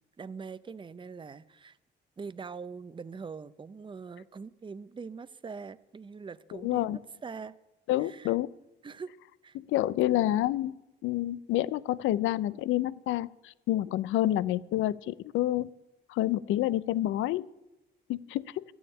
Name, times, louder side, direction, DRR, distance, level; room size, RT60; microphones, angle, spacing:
voice 1, 0.2-1.8 2.2-7.6 8.0-8.4 8.8-9.1 9.4-9.6, right 5 dB, 25° right, 15 dB, 0.6 m, -43 dB
voice 2, 6.6-7.0 7.9-8.5 9.6-10.8 11.0-15.7 16.1-17.5 18.1-18.6, left 14 dB, 85° left, 20 dB, 0.5 m, -28 dB
12.5 x 7.1 x 9.9 m, 0.96 s
cardioid pair, 90°, 20 cm